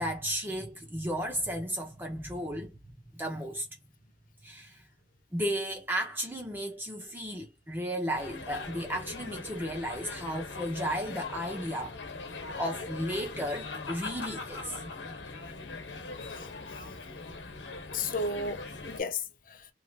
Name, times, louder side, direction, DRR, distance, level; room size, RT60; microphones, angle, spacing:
voice 1, 0.0-2.8 3.1-3.7 4.4-4.9 5.3-12.0 12.3-14.8, equal, 10° right, 0.6 m, -34 dB
sound 1, 8.1-19.0, left 3 dB, 90° left, 0.9 m, -41 dB
voice 2, 16.1-17.0 17.9-19.7, left 3 dB, 50° left, 0.6 m, -35 dB
3.1 x 2.7 x 2.3 m
head